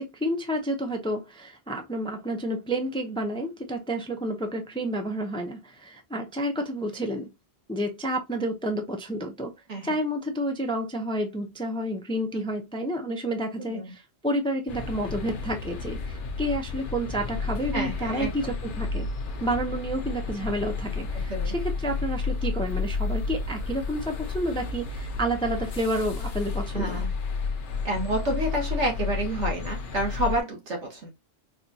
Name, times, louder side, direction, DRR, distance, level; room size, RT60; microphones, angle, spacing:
voice 1, 0.0-7.3 7.7-9.5 9.8-19.1 19.4-27.0, right 1 dB, 5° left, 0.4 m, -30 dB
sound 1, 14.7-30.4, left 4 dB, 55° left, 0.7 m, -31 dB
voice 2, 17.7-18.5 21.1-21.5 26.7-27.1 27.8-31.1, right 1 dB, 85° right, 1.6 m, -29 dB
4.2 x 2.3 x 2.7 m
omnidirectional pair, 1.2 m